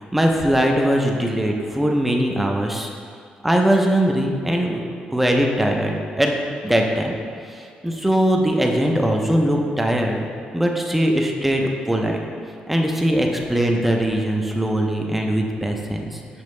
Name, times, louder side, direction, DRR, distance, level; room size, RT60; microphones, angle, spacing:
voice 1, 0.0-2.9 3.4-4.8 5.1-7.2 7.5-10.2 10.5-12.2 12.7-16.2, right 1 dB, 5° right, 1 dB, 0.5 m, -21 dB
7.0 x 5.7 x 3.2 m, 2.3 s
cardioid pair, 160°, 3 cm